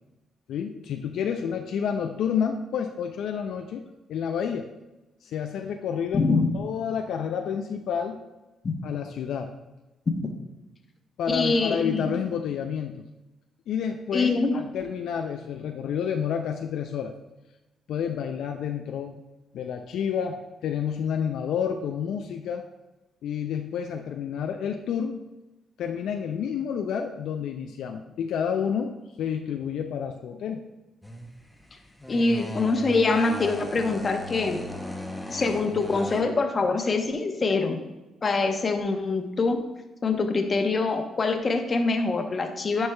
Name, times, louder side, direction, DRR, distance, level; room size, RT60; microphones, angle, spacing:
voice 1, 0.5-3.8 4.1-4.7 5.2-6.2 6.5-8.2 8.8-9.5 11.2-13.0 13.7-17.1 17.9-19.2 19.5-22.7 23.2-25.2 25.8-30.6, left 7 dB, 75° left, 4 dB, 0.4 m, -29 dB
voice 2, 6.1-6.5 8.6-8.8 11.3-12.1 14.1-14.6 32.1-34.6 35.3-37.8 38.2-39.6 40.0-42.9, left 3 dB, 35° left, 5 dB, 0.8 m, -24 dB
sound 1, 31.0-36.2, left 1 dB, 5° left, 0.7 m, -37 dB
9.6 x 4.4 x 2.2 m, 1.0 s
cardioid pair, 90°, 0 cm